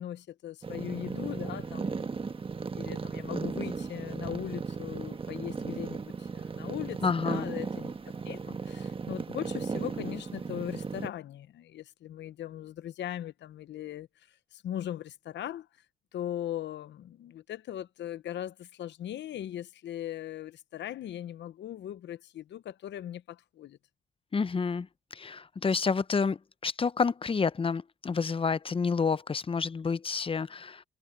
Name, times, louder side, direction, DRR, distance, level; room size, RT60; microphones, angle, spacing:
voice 1, 0.0-2.1 2.7-7.9 8.2-14.1 14.5-15.7 16.1-23.8, left 11 dB, 65° left, 0.8 m, -39 dB
sound 1, 0.6-11.1, right 4 dB, 25° right, 1.2 m, -36 dB
voice 2, 7.0-7.5 24.3-30.8, left 5 dB, 25° left, 0.7 m, -29 dB
cardioid pair, 90°, 20 cm